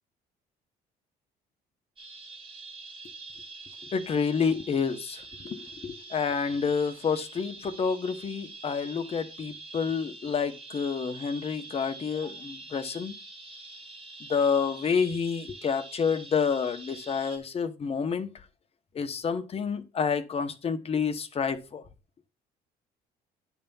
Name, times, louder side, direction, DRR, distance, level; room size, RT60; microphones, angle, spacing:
sound 1, 2.0-17.4, right 3 dB, 30° right, 1.7 m, -45 dB
voice 1, 3.9-13.1 14.2-18.3 18.9-21.8, left 6 dB, 35° left, 0.9 m, -29 dB
10.0 x 3.5 x 5.5 m
cardioid pair, 110°, 17 cm